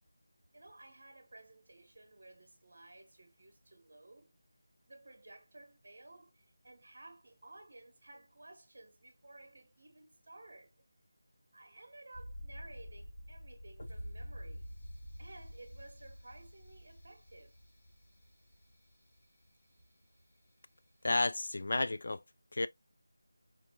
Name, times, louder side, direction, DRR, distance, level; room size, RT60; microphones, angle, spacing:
voice 1, 0.5-4.4 4.9-10.7 11.5-14.7 15.2-17.6, right 2 dB, 50° right, 1.3 m, -55 dB
sound 1, 12.1-18.9 19.2-19.3, equal, 30° left, 1.7 m, -48 dB
voice 2, 21.0-22.2 22.5-22.7, left 2 dB, 50° left, 0.4 m, -31 dB
4.4 x 3.1 x 2.3 m
figure-of-eight pair, 175°, 0 cm